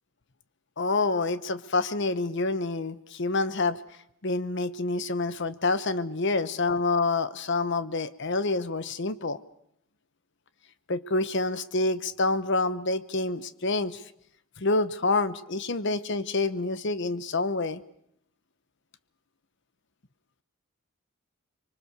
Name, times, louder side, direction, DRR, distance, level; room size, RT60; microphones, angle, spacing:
voice 1, 0.8-3.8 4.2-9.4 10.9-14.0 14.6-17.8, left 3 dB, 60° left, 14 dB, 1.0 m, -27 dB
25.0 x 23.5 x 6.8 m, 0.74 s
head